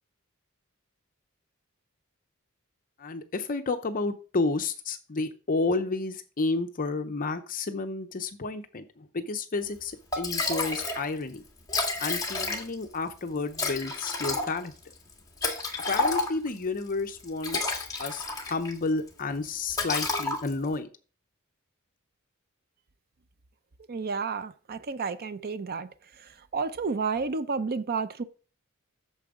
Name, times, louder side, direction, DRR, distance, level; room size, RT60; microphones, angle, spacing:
voice 1, 3.0-11.4 12.0-14.7 15.9-17.7 18.0-20.9, left 3 dB, 40° left, 0.7 m, -31 dB
Liquid, 9.8-9.9 10.1-11.0 11.3-11.4 11.6-12.9 13.5-16.6 17.2-18.8 19.1-19.3 19.7-20.7, left 3 dB, 15° left, 1.9 m, -30 dB
voice 2, 23.9-25.9 26.2-28.2, right 4 dB, 45° right, 0.5 m, -31 dB
8.8 x 6.9 x 3.7 m
head